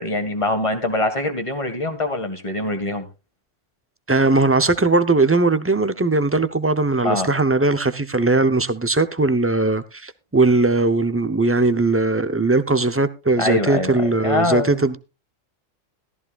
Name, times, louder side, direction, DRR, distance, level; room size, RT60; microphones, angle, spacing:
voice 1, 0.0-3.1 7.0-7.3 13.4-14.8, left 2 dB, 25° left, 1.8 m, -23 dB
voice 2, 4.1-15.0, right 3 dB, 15° right, 0.5 m, -19 dB
15.0 x 13.5 x 2.4 m
omnidirectional pair, 1.3 m